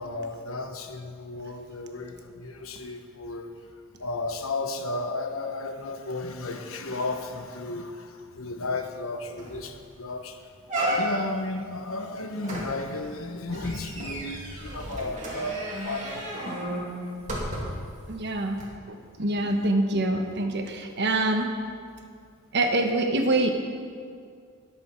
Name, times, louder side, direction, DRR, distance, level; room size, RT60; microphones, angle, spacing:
voice 1, 0.0-3.5 4.0-10.4 10.7-16.6, left 2 dB, 75° left, 6 dB, 1.1 m, -34 dB
sound 1, 8.9-9.0 9.4-9.7 10.1-10.2 10.7-11.4 12.4-17.9 18.5-18.6, right 1 dB, 35° right, 3.0 m, -33 dB
voice 2, 18.1-18.6 19.2-21.5 22.5-23.5, right 2 dB, 55° right, 4 dB, 1.2 m, -25 dB
21.0 x 7.9 x 4.5 m, 2.2 s
head